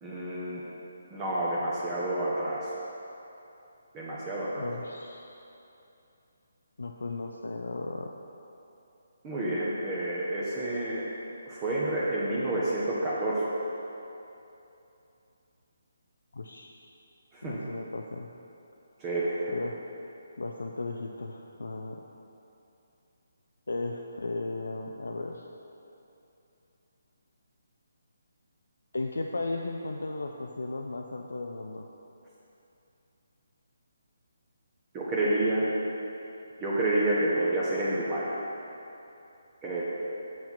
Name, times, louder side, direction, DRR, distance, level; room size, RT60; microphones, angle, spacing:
voice 1, 0.0-0.6 1.1-2.7 3.9-4.7 9.2-11.0 11.5-13.5 17.3-17.6 19.0-19.5 34.9-35.7 36.6-38.3 39.6-39.8, right 1 dB, 20° right, -7 dB, 1.2 m, -29 dB
voice 2, 4.5-5.2 6.8-8.1 16.3-16.8 17.4-18.3 19.5-19.8 20.4-22.0 23.7-25.5 28.9-31.9, left 3 dB, 70° left, 2 dB, 0.5 m, -35 dB
7.1 x 6.2 x 5.9 m, 2.8 s
figure-of-eight pair, 145°, 0 cm